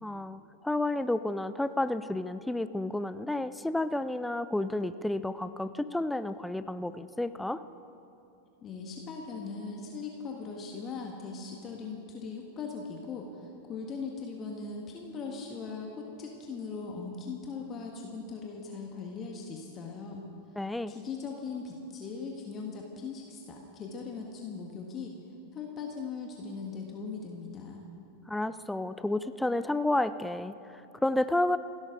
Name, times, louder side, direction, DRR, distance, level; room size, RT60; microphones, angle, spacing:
voice 1, 0.0-7.6 20.6-21.0 28.3-31.6, left 1 dB, 5° left, 13 dB, 0.4 m, -31 dB
voice 2, 8.6-20.3 20.9-25.1 25.5-27.8, left 4 dB, 25° left, 0 dB, 1.7 m, -39 dB
28.5 x 12.5 x 3.9 m, 2.7 s
figure-of-eight pair, 90°, 0 cm